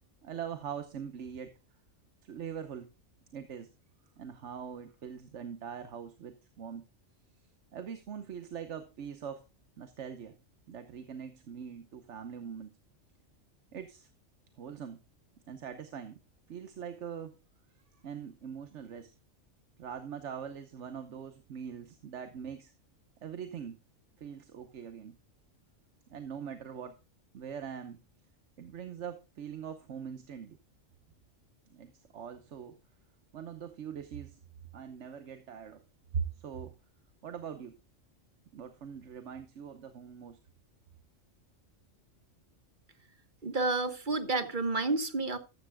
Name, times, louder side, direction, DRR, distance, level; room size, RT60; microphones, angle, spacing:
voice 1, 0.2-1.6 2.2-2.9 3.3-3.7 4.2-6.8 7.7-9.4 9.8-10.4 10.7-12.7 13.7-14.1 14.6-15.0 15.5-16.2 16.5-17.4 17.9-19.1 19.8-22.7 23.2-23.8 24.2-25.2 26.1-27.0 27.3-28.0 28.6-30.6 31.7-32.8 33.3-34.4 34.7-35.8 36.1-36.8 37.2-37.8 38.5-40.4, right 7 dB, 65° right, 9 dB, 1.2 m, -42 dB
voice 2, 43.4-45.4, right 3 dB, 40° right, 10 dB, 1.2 m, -30 dB
13.5 x 13.0 x 2.2 m, 0.28 s
omnidirectional pair, 1.3 m